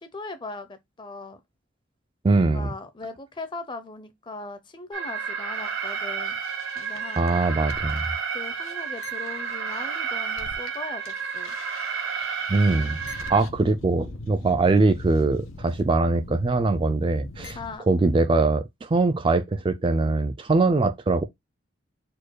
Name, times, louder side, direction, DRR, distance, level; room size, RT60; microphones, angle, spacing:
voice 1, 0.0-1.4 2.3-6.4 6.7-7.2 8.3-11.5 17.6-17.8, left 3 dB, 25° left, 0.6 m, -39 dB
voice 2, 2.2-2.7 7.2-8.0 12.5-13.0 13.3-17.6 17.9-21.3, right 3 dB, 25° right, 0.3 m, -22 dB
Alarm, 4.9-13.4, right 6 dB, 80° right, 1.3 m, -31 dB
Caçadors de Sons Dr. Puigvert, 5.5-10.8 11.0-17.8, left 2 dB, 85° left, 0.8 m, -42 dB
4.4 x 2.3 x 4.5 m
head